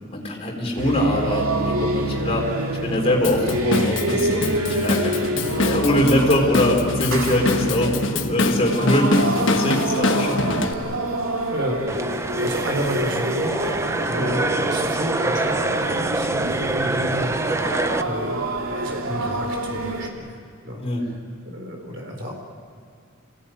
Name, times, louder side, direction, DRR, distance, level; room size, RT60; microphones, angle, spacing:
voice 1, 0.1-2.5 2.8-11.0 14.0-14.3 20.8-21.0, left 1 dB, 30° left, -1 dB, 4.2 m, -23 dB
sound 1, 0.8-20.1, right 1 dB, 85° right, 2.4 m, -27 dB
Drum kit / Drum, 3.2-10.7, left 2 dB, 65° left, 1.3 m, -25 dB
voice 2, 11.5-20.4 20.6-20.8 21.4-22.3, equal, 55° right, 1 dB, 4.5 m, -31 dB
sound 2, 11.9-18.0, right 2 dB, 15° right, 0.6 m, -25 dB
26.5 x 17.5 x 9.4 m, 2.2 s
head